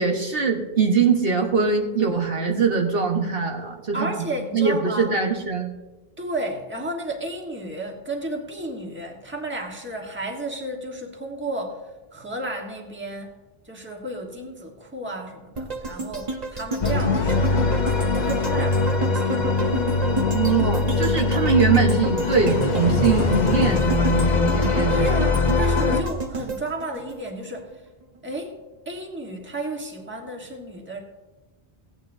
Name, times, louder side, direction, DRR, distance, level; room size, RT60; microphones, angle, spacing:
voice 1, 0.0-4.1 4.5-5.7 20.3-25.3, right 5 dB, 65° right, 1 dB, 1.4 m, -22 dB
voice 2, 3.9-5.1 6.2-13.3 13.6-19.5 24.9-27.8 28.2-28.6 28.8-31.0, right 1 dB, 10° right, 1 dB, 1.3 m, -33 dB
sound 1, 15.5-27.7 28.1-28.2, right 3 dB, 40° right, 1.1 m, -31 dB
sound 2, 16.8-26.0, left 3 dB, 45° left, 0.9 m, -22 dB
16.0 x 9.5 x 2.6 m, 1.2 s
omnidirectional pair, 1.1 m